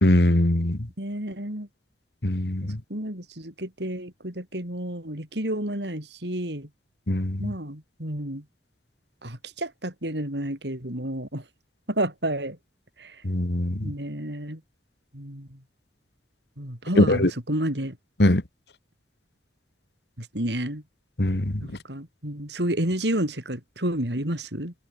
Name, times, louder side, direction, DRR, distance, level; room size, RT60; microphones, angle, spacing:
voice 1, 0.0-0.8 2.2-2.8 7.1-7.5 13.2-13.9 17.0-17.3 18.2-18.4 21.2-21.6, left 1 dB, 70° left, 2.0 m, -21 dB
voice 2, 1.0-1.7 2.6-6.7 7.4-8.4 9.2-11.4 11.9-12.6 13.0-13.2 13.8-14.6 15.1-15.6 16.6-18.0 20.2-20.8 21.6-24.7, right 1 dB, 75° right, 7.4 m, -30 dB
head